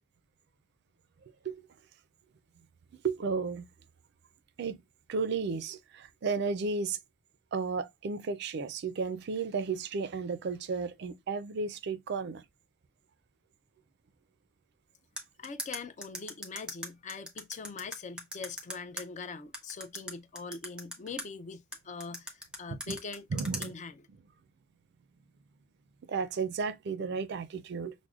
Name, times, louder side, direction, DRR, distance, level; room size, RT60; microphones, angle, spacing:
voice 1, 1.2-1.6 3.0-3.7 4.6-4.8 5.1-7.0 7.5-12.4 22.9-23.0 23.3-23.7 26.1-28.1, right 4 dB, 55° right, 0.4 m, -33 dB
sound 1, 15.2-19.0 19.5-21.2 21.7-23.7, equal, 5° right, 0.8 m, -39 dB
voice 2, 15.4-23.3 23.6-24.1, left 4 dB, 40° left, 0.4 m, -42 dB
6.0 x 2.1 x 2.3 m
head